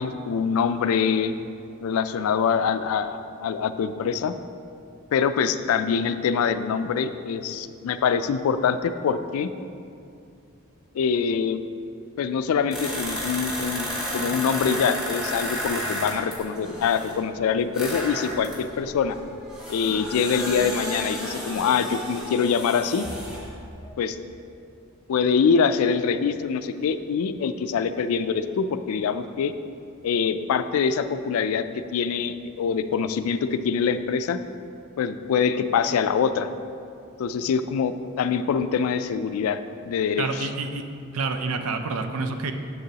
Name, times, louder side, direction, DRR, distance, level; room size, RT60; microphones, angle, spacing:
voice 1, 0.0-1.3 1.8-4.3 5.1-9.5 10.9-11.6 12.2-13.9 14.1-19.2 19.7-23.1 24.0-24.2 25.1-29.5 30.0-34.4 35.0-36.5 37.2-39.6 39.9-40.5, left 6 dB, 80° left, 12 dB, 0.3 m, -24 dB
sound 1, 12.7-17.1 17.7-23.5 23.8-23.9, equal, 5° right, 1.2 m, -32 dB
voice 2, 40.2-40.9 41.1-42.5, right 4 dB, 90° right, 6 dB, 0.5 m, -28 dB
6.9 x 6.6 x 2.8 m, 2.5 s
head